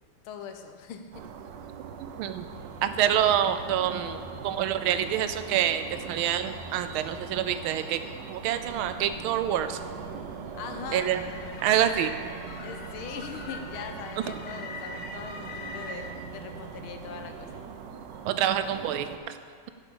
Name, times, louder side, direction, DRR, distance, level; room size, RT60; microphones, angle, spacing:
voice 1, 0.2-1.3 10.5-11.1 12.6-17.6, left 7 dB, 90° left, 6 dB, 1.7 m, -41 dB
sound 1, 1.1-19.2, right 7 dB, 70° right, 1.1 m, -43 dB
voice 2, 2.0-2.5 2.8-8.0 8.3-9.8 10.9-11.2 11.6-12.1 18.2-19.1, right 10 dB, 85° right, 10 dB, 1.5 m, -26 dB
sound 2, 2.5-17.6, right 1 dB, 30° left, 3.4 m, -46 dB
sound 3, 11.0-16.1, left 3 dB, 55° left, 1.2 m, -42 dB
9.1 x 7.0 x 6.9 m, 2.2 s
omnidirectional pair, 2.3 m